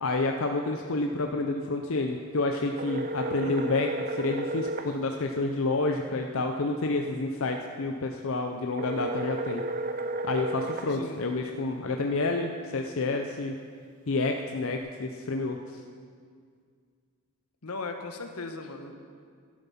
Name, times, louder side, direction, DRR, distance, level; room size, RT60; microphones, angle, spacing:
voice 1, 0.0-9.6 10.2-13.5 14.1-15.8, left 3 dB, 60° left, 4 dB, 0.6 m, -29 dB
sound 1, 2.8-4.9 8.8-10.9, right 2 dB, 40° right, 0.6 m, -32 dB
voice 2, 3.4-3.8 10.9-11.2 17.6-18.9, left 3 dB, 85° left, 5 dB, 1.2 m, -38 dB
12.0 x 11.0 x 5.7 m, 2.1 s
head